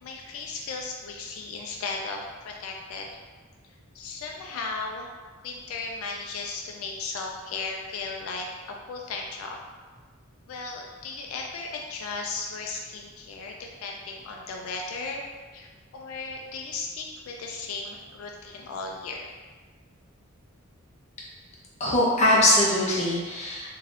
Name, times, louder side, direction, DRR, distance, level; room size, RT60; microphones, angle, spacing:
voice 1, 0.0-3.1 3.9-5.1 5.4-9.6 10.5-15.2 15.5-19.3, left 4 dB, 85° left, 1 dB, 0.3 m, -36 dB
voice 2, 21.8-23.7, left 1 dB, 35° left, -5 dB, 0.7 m, -21 dB
3.2 x 2.6 x 2.4 m, 1.4 s
head